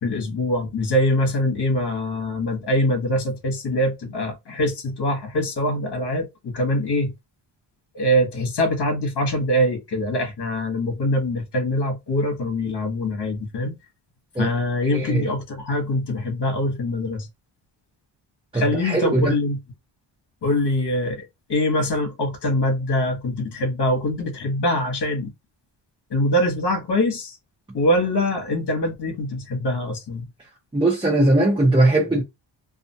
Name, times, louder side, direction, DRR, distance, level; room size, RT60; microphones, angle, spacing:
voice 1, 0.0-7.1 7.9-13.8 14.4-17.3 18.5-19.6 20.4-25.3 26.1-27.4 27.7-30.2, left 1 dB, 55° left, 1.2 m, -23 dB
voice 2, 14.8-15.3 18.5-19.3 30.7-32.2, right 2 dB, 10° right, 0.8 m, -19 dB
2.5 x 2.4 x 2.7 m
cardioid pair, 95°, 48 cm